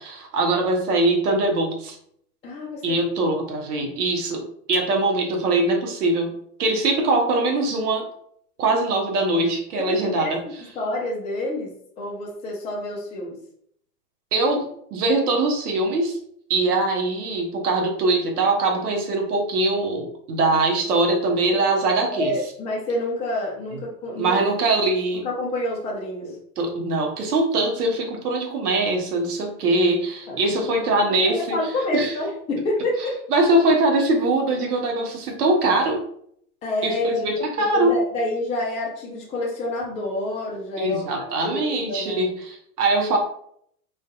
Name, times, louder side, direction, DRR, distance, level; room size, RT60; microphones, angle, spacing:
voice 1, 0.0-2.0 2.8-8.1 8.6-10.4 14.3-16.2 16.5-22.3 24.2-25.3 26.6-31.6 31.9-32.1 33.3-36.0 36.8-37.9 40.8-43.2, right 2 dB, 70° right, 2 dB, 0.8 m, -22 dB
voice 2, 2.4-3.0 9.7-13.4 22.1-24.4 25.2-26.4 30.3-30.8 31.2-33.2 36.6-42.3, left 1 dB, 15° left, -2 dB, 0.4 m, -28 dB
2.5 x 2.3 x 2.3 m, 0.67 s
figure-of-eight pair, 85°, 48 cm